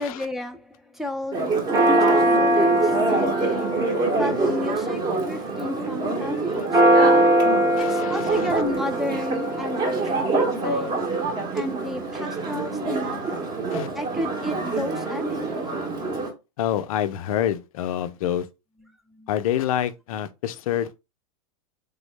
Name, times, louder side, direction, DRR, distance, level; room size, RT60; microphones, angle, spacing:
voice 1, 0.0-3.8 4.2-7.3 7.8-11.0 11.5-13.4 13.9-15.7 19.1-19.3, left 2 dB, ahead, 0.4 m, -32 dB
Church bell, 1.3-16.3, right 2 dB, 20° right, 0.9 m, -22 dB
voice 2, 7.8-8.5 13.7-13.9 16.6-18.5 19.3-21.0, left 10 dB, 75° left, 0.5 m, -27 dB
3.6 x 2.0 x 3.1 m
supercardioid pair, 135°, 18 cm